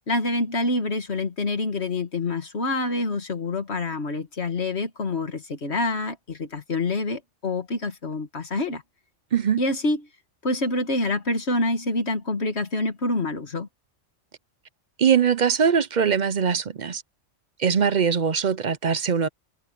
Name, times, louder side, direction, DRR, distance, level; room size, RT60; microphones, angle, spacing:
voice 1, 0.1-8.8 9.6-10.0 10.4-13.7, left 2 dB, 60° left, 2.2 m, -26 dB
voice 2, 9.3-9.6 15.0-17.0 17.6-19.3, right 7 dB, 45° right, 0.7 m, -21 dB
omnidirectional pair, 1.3 m